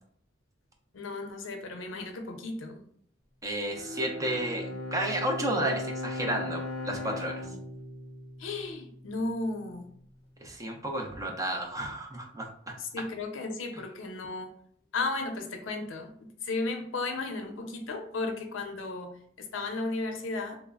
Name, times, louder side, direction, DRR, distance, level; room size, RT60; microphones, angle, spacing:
voice 1, 0.9-2.8 8.4-9.9 12.8-14.6 14.9-20.6, left 3 dB, 75° left, 4 dB, 0.5 m, -34 dB
voice 2, 3.4-7.3 10.4-12.7, right 1 dB, 15° right, 2 dB, 0.4 m, -32 dB
Bowed string instrument, 3.7-9.2, left 1 dB, 45° right, 1.4 m, -38 dB
3.2 x 2.0 x 2.3 m, 0.64 s
head